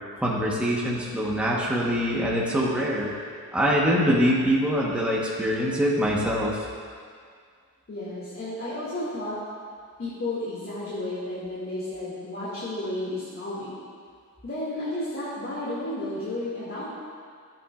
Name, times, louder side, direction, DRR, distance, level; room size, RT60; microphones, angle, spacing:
voice 1, 0.2-3.1 3.5-6.6, equal, 5° right, -5 dB, 1.3 m, -24 dB
voice 2, 7.9-9.4 10.0-13.8 14.4-16.9, left 1 dB, 40° left, -11 dB, 2.4 m, -32 dB
14.5 x 8.7 x 2.5 m, 2.1 s
wide cardioid pair, 140°, 35 cm